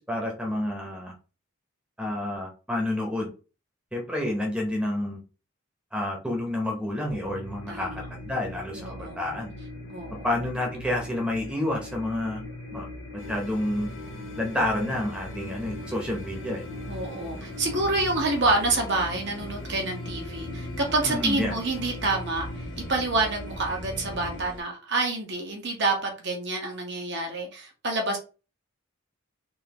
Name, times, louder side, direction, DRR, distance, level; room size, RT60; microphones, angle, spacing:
voice 1, 0.1-1.1 2.0-3.3 3.9-5.2 5.9-9.5 10.2-12.4 12.7-12.9 13.3-13.9 14.4-16.6 21.0-21.6, left 1 dB, 5° right, 0 dB, 0.9 m, -29 dB
sound 1, 7.1-24.4, left 1 dB, 55° left, 1.0 m, -40 dB
voice 2, 7.7-8.0 8.7-9.2 9.9-10.4 16.9-28.2, right 2 dB, 60° right, 1 dB, 1.2 m, -28 dB
sound 2, 13.2-24.6, left 1 dB, 75° left, 1.7 m, -42 dB
3.9 x 3.0 x 2.9 m, 0.34 s
head